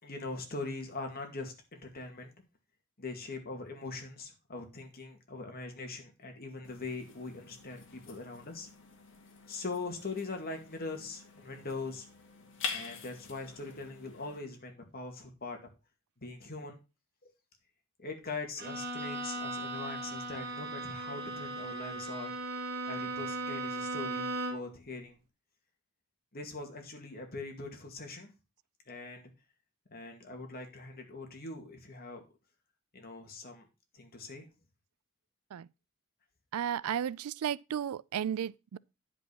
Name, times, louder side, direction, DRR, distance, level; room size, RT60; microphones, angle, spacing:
voice 1, 0.0-2.3 3.0-8.7 9.5-12.1 12.7-15.6 16.2-16.8 17.2-17.3 18.0-22.3 22.8-25.2 26.3-28.3 28.9-29.3 29.9-32.2 32.9-33.7 33.9-34.5, left 3 dB, 45° left, 2.2 m, -42 dB
sound 1, 6.6-14.4, left 5 dB, 60° left, 1.8 m, -46 dB
Bowed string instrument, 18.6-24.8, right 2 dB, 50° right, 2.3 m, -37 dB
voice 2, 36.5-38.8, right 9 dB, 80° right, 0.4 m, -34 dB
10.0 x 5.2 x 5.4 m
head